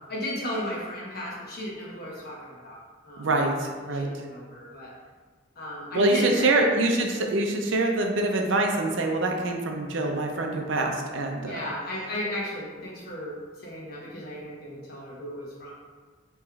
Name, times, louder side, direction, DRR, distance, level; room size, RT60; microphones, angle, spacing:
voice 1, 0.1-2.8 3.0-3.3 3.8-4.9 5.6-6.7 11.4-13.3 13.6-15.7, left 1 dB, 50° left, -4 dB, 1.0 m, -34 dB
voice 2, 3.2-4.1 5.9-11.6, right 2 dB, 70° right, 2 dB, 0.5 m, -25 dB
4.7 x 3.0 x 2.3 m, 1.4 s
head